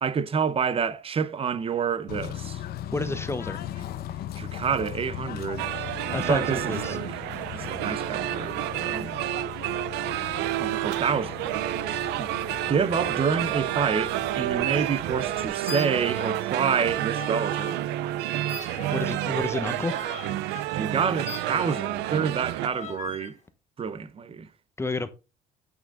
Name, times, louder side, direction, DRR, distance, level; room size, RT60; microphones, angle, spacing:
voice 1, 0.0-2.6 4.4-5.7 6.3-7.2 7.5-9.2 10.6-11.5 12.2-12.3 12.7-18.0 20.7-23.4 23.8-24.5, right 6 dB, 35° right, 0.8 m, -28 dB
Bird / Train, 2.1-15.5, left 12 dB, 65° left, 0.9 m, -38 dB
voice 2, 2.9-3.6 6.1-7.0 18.9-20.0 24.8-25.1, left 2 dB, 15° left, 1.0 m, -30 dB
Block Party Binaural, 5.6-22.7, right 14 dB, 90° right, 0.5 m, -29 dB
sound 1, 15.6-16.5 16.7-17.8 18.5-22.1 22.6-23.3, left 7 dB, 40° left, 2.2 m, -41 dB
9.0 x 6.4 x 3.7 m
cardioid pair, 110°, 17 cm